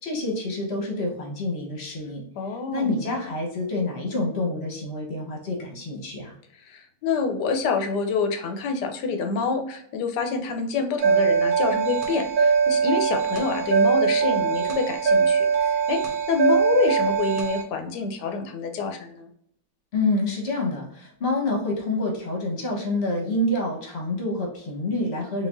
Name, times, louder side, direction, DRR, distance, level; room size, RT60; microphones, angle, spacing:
voice 1, 0.0-2.2 2.7-6.3 19.9-25.5, left 2 dB, 40° left, 0 dB, 1.2 m, -27 dB
voice 2, 2.4-3.3 6.6-16.0 16.3-19.3, left 4 dB, 70° left, 5 dB, 1.2 m, -27 dB
sound 1, 11.0-17.6, right 6 dB, 60° right, 1.3 m, -22 dB
4.1 x 3.7 x 2.5 m, 0.69 s
omnidirectional pair, 2.0 m